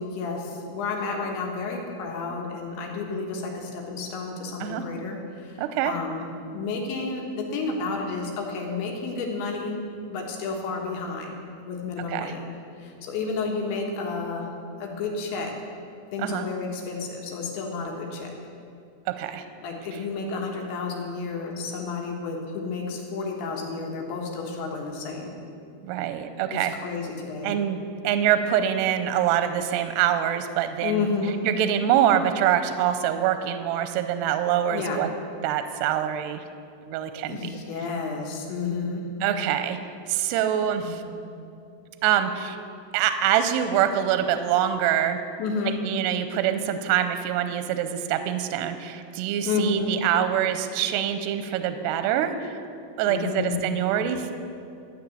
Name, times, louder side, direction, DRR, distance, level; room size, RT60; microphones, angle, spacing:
voice 1, 0.0-6.2 6.5-9.8 10.1-11.4 11.7-12.5 12.8-14.5 14.8-15.5 16.1-18.3 19.6-25.4 26.5-27.6 30.8-31.4 34.7-35.0 37.2-39.1 40.8-41.2 45.4-45.8 49.4-49.9 53.1-53.6, left 4 dB, 90° left, 0 dB, 3.8 m, -31 dB
voice 2, 5.6-5.9 12.1-12.3 16.2-16.5 19.1-19.5 25.8-26.7 27.4-31.1 31.4-35.1 35.4-36.4 36.9-37.4 39.2-39.8 40.1-41.0 42.0-42.6 42.9-45.2 45.8-52.6 53.0-54.3, right 10 dB, 85° right, 10 dB, 2.5 m, -25 dB
13.0 x 6.9 x 8.4 m, 2.5 s
omnidirectional pair, 5.1 m